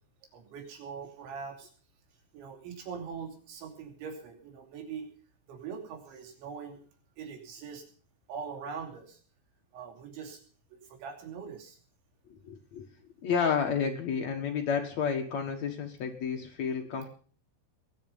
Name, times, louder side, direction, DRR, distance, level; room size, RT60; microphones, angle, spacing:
voice 1, 0.3-1.7 2.3-5.1 5.5-6.8 7.2-7.8 8.3-9.2 9.7-10.4 10.7-11.8, right 6 dB, 70° right, 3 dB, 5.1 m, -42 dB
voice 2, 12.4-12.9 13.2-17.1, left 6 dB, 85° left, 2 dB, 1.5 m, -30 dB
20.5 x 11.0 x 5.4 m, 0.43 s
omnidirectional pair, 5.6 m